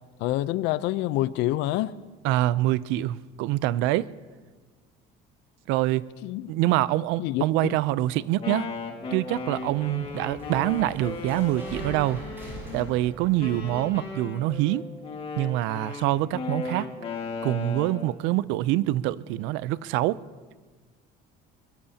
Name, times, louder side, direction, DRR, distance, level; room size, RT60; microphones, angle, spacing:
voice 1, 0.2-1.9 6.2-6.5 7.2-7.7, left 15 dB, 75° left, 17 dB, 0.6 m, -27 dB
voice 2, 2.2-4.1 5.7-6.1 6.5-8.7 9.1-12.2 12.7-14.8 15.4-16.9 17.4-20.2, right 15 dB, 85° right, 19 dB, 0.5 m, -25 dB
Wind instrument woodwind instrument, 8.2-12.9 13.4-18.1, left 4 dB, 30° left, 1.8 m, -36 dB
sound 1, 8.8-14.4, right 1 dB, 10° right, 6.2 m, -43 dB
23.0 x 22.0 x 2.8 m, 1.4 s
cardioid pair, 170°, 19 cm